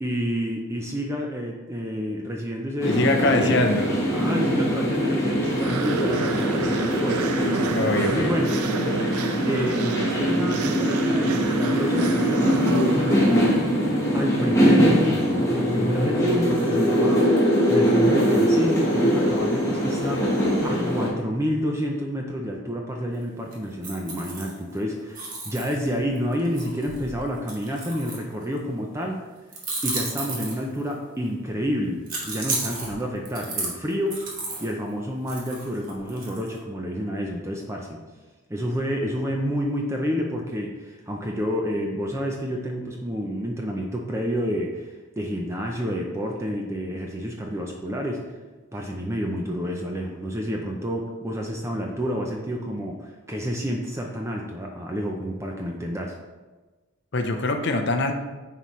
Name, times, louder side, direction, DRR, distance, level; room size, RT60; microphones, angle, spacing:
voice 1, 0.0-3.6 4.0-7.6 8.1-8.6 9.4-13.6 14.1-17.3 17.7-29.2 29.8-34.3 34.6-38.0 38.5-48.2 48.7-56.2, equal, 10° right, 0 dB, 0.5 m, -29 dB
voice 2, 2.8-3.9 7.8-8.3 57.1-58.1, left 2 dB, 50° left, 5 dB, 0.6 m, -23 dB
sound 1, 2.8-21.1, equal, 15° left, 1.2 m, -22 dB
sound 2, 5.4-13.9, right 6 dB, 80° right, 0.4 m, -32 dB
sound 3, 23.5-24.8 25.1-28.6 29.5-30.9 32.1-34.7 35.3-36.6, right 3 dB, 40° right, 1.3 m, -33 dB
9.2 x 4.2 x 3.1 m, 1.3 s
head